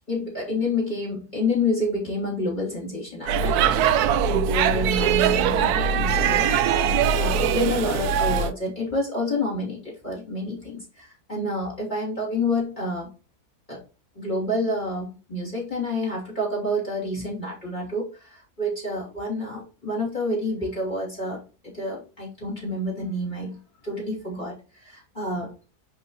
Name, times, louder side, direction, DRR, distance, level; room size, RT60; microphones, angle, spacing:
voice 1, 0.1-6.6 7.2-13.1 13.7-13.8 14.1-21.4 21.7-23.6 23.8-25.5, left 1 dB, 30° left, -4 dB, 3.2 m, -28 dB
Speech / Shout / Subway metro underground, 3.3-8.5, right 7 dB, 75° right, 1.1 m, -21 dB
11.0 x 3.7 x 3.0 m, 0.33 s
omnidirectional pair, 1.7 m